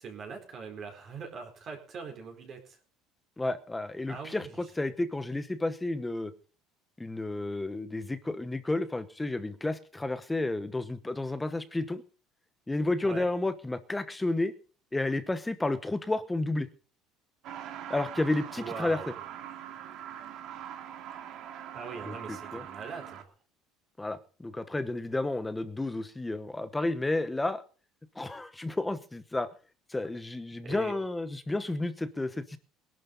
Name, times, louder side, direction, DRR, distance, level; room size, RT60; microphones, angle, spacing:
voice 1, 0.0-2.8 4.1-4.5 13.0-13.3 18.6-19.2 21.7-23.3 30.6-30.9, right 5 dB, 35° right, 3 dB, 4.3 m, -41 dB
voice 2, 3.4-6.3 7.0-12.0 12.7-14.5 14.9-16.7 17.9-19.0 22.1-22.6 24.0-27.6 28.1-29.5 29.9-32.6, left 2 dB, 10° left, 11 dB, 1.0 m, -31 dB
Truck, 17.4-23.2, right 10 dB, 50° right, 2.4 m, -42 dB
22.0 x 11.5 x 4.0 m, 0.38 s
cardioid pair, 165°, 0 cm